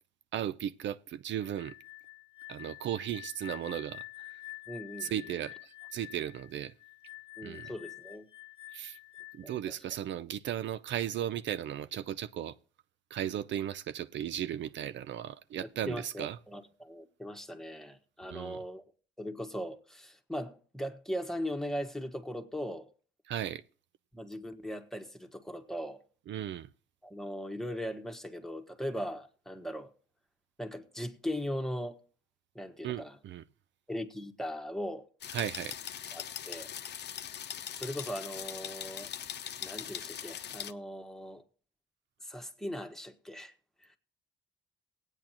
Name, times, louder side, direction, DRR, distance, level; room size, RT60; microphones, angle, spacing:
voice 1, 0.3-1.8 2.5-4.4 5.0-6.7 7.4-7.7 8.7-9.0 9.3-12.6 13.1-16.4 18.3-18.6 23.3-23.6 26.3-26.7 32.8-33.4 35.3-35.8, right 10 dB, 70° right, 0.5 m, -36 dB
sound 1, 1.4-9.6, left 19 dB, 25° left, 1.0 m, -48 dB
voice 2, 4.7-5.3 7.4-8.3 9.4-9.6 15.5-18.8 19.2-22.9 24.1-26.0 27.0-29.9 30.6-32.0 32.5-33.2 33.9-35.1 36.1-36.7 37.8-39.1 39.6-41.4 42.2-43.5 43.8-43.9, equal, ahead, 1.5 m, -39 dB
sound 2, 35.2-40.7, left 9 dB, 60° left, 0.8 m, -41 dB
19.5 x 8.9 x 2.9 m
cardioid pair, 90°, 20 cm